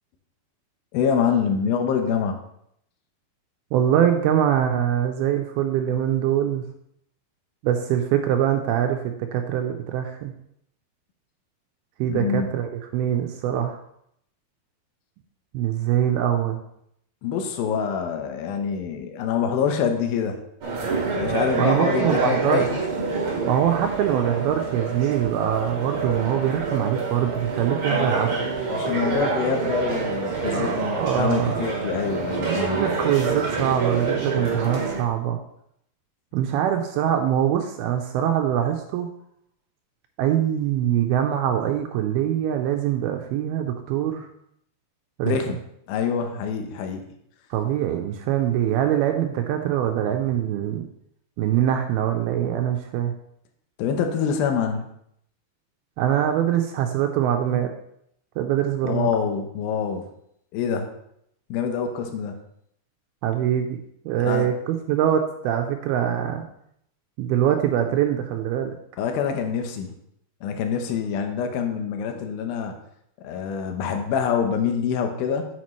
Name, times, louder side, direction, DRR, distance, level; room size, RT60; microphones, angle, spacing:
voice 1, 0.9-2.4 12.1-12.5 17.2-20.4 21.1-22.8 27.9-32.8 45.2-45.6 45.9-47.0 53.8-54.9 58.8-60.0 60.5-60.9 61.5-62.4 64.2-64.5 69.0-70.0 70.4-72.7 73.2-75.5, left 7 dB, 75° left, 5 dB, 2.5 m, -26 dB
voice 2, 3.7-6.6 7.6-10.3 12.0-13.8 15.5-16.6 21.6-22.7 23.4-28.5 30.5-31.7 32.4-35.4 36.3-39.1 40.2-44.3 45.2-45.4 47.5-50.9 51.4-53.1 56.0-57.7 58.4-59.1 63.2-63.8 64.1-66.5 67.2-68.8, right 10 dB, 80° right, 4 dB, 2.3 m, -23 dB
sound 1, 20.6-35.0, right 4 dB, 45° right, 1.8 m, -27 dB
8.5 x 7.3 x 3.1 m, 0.73 s
omnidirectional pair, 4.7 m